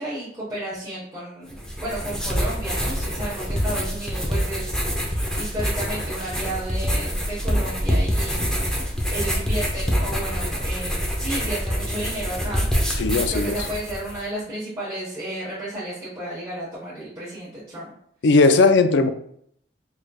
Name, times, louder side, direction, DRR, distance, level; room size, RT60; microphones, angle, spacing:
voice 1, 0.0-8.7 9.1-12.7 13.3-17.9, right 1 dB, 20° right, -10 dB, 1.1 m, -33 dB
sound 1, 1.5-14.2, equal, 5° left, 0.7 m, -25 dB
voice 2, 13.0-13.5 18.2-19.1, left 3 dB, 75° left, 9 dB, 0.4 m, -17 dB
4.9 x 3.1 x 2.3 m, 0.68 s
head